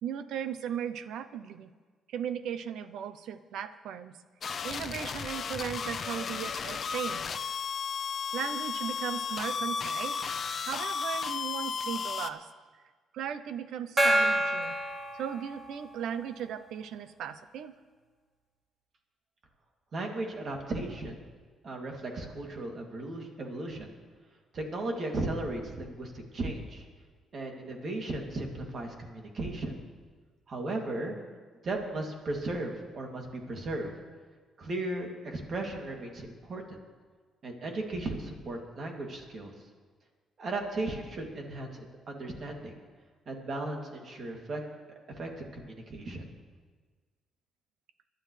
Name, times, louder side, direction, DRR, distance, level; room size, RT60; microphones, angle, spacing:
voice 1, 0.0-1.7 2.1-4.1 4.6-7.2 8.3-12.5 13.1-14.7 15.1-17.7, right 9 dB, 80° right, 13 dB, 0.7 m, -37 dB
sound 1, 4.4-12.3, left 6 dB, 50° left, 0.7 m, -34 dB
Gong, 14.0-16.0, right 1 dB, 25° right, 2.6 m, -28 dB
voice 2, 19.9-21.3 21.6-23.9 24.5-26.8 27.3-29.8 30.5-31.2 31.6-33.9 34.6-36.8 37.4-39.5 40.4-42.7 43.3-44.6 45.2-46.2, right 2 dB, 50° right, 1 dB, 2.6 m, -36 dB
24.0 x 11.5 x 3.3 m, 1.5 s
cardioid pair, 90°, 0 cm